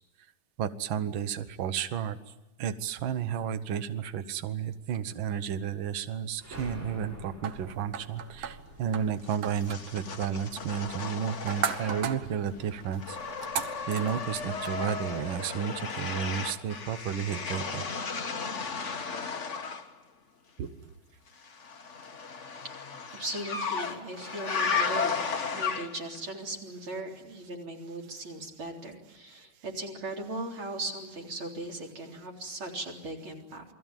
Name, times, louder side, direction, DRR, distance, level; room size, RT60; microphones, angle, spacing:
voice 1, 0.6-2.2 2.6-13.2 13.9-17.8 20.6-20.7, right 8 dB, 85° right, 11 dB, 1.0 m, -32 dB
sound 1, 6.4-10.9, left 1 dB, 20° right, 5.2 m, -48 dB
sound 2, 7.4-14.8, right 8 dB, 60° right, 2.0 m, -38 dB
sound 3, 9.3-12.3 12.6-19.9 21.4-26.2, left 5 dB, 50° left, 0.8 m, -34 dB
voice 2, 23.1-25.1 25.5-33.6, right 2 dB, 35° right, 1 dB, 4.3 m, -38 dB
28.5 x 20.5 x 9.1 m, 1.0 s
omnidirectional pair, 3.8 m